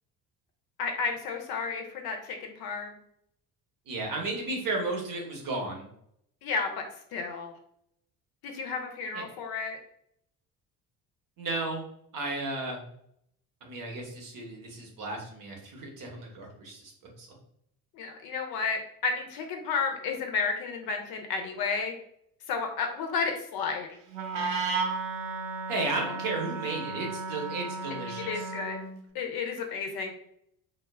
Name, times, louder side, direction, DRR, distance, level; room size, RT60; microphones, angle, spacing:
voice 1, 0.8-3.0 6.4-6.8 7.1-7.5 8.4-9.8 18.0-21.9 22.5-23.9 28.3-28.8 29.1-30.1, left 5 dB, 50° left, 4 dB, 0.6 m, -32 dB
voice 2, 3.9-5.9 9.1-9.2 11.4-11.8 12.1-12.8 13.6-16.9 17.2-17.3 25.7-28.4, right 2 dB, 45° right, 1 dB, 0.9 m, -34 dB
Wind instrument woodwind instrument, 24.1-29.0, right 4 dB, 70° right, 0.6 m, -34 dB
2.1 x 2.0 x 3.3 m, 0.72 s
hypercardioid pair, 55°, 47 cm